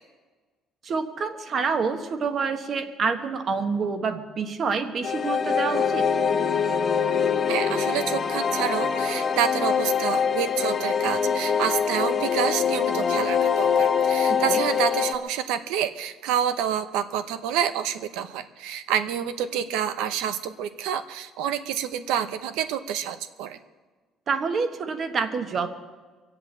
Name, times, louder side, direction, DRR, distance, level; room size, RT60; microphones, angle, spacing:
voice 1, 0.8-6.1 14.5-14.6 24.3-25.7, right 5 dB, 40° right, 7 dB, 1.3 m, -27 dB
sound 1, 5.0-15.1, left 6 dB, 35° left, 1.0 m, -24 dB
voice 2, 7.5-23.6, right 9 dB, 90° right, 11 dB, 0.8 m, -28 dB
23.5 x 8.1 x 7.5 m, 1.4 s
cardioid pair, 125°, 0 cm